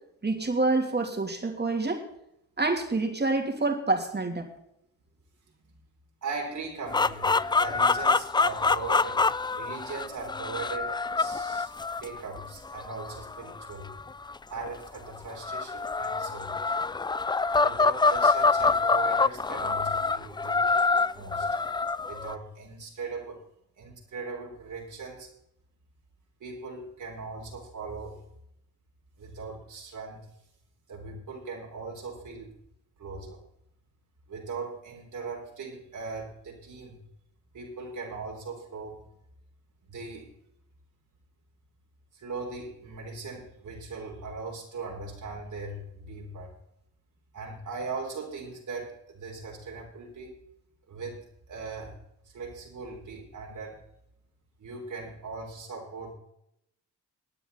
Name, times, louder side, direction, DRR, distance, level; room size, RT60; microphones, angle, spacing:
voice 1, 0.2-2.0 2.6-4.5, right 3 dB, 30° right, 3 dB, 2.9 m, -27 dB
voice 2, 6.2-9.2 9.5-11.7 12.0-13.9 14.5-16.7 17.6-20.6 21.1-21.6 22.1-23.5 23.8-25.3 26.4-28.2 29.2-30.3 30.9-32.5 33.0-33.4 34.3-37.0 37.5-39.1 39.8-40.3 42.1-46.6 47.3-50.3 50.9-51.9 52.2-53.8 54.6-56.1, right 4 dB, 60° right, 0 dB, 3.4 m, -39 dB
sound 1, 6.9-14.7 15.3-22.3, left 4 dB, 15° left, 0.3 m, -26 dB
17.0 x 9.1 x 4.0 m, 0.76 s
supercardioid pair, 50°, 35 cm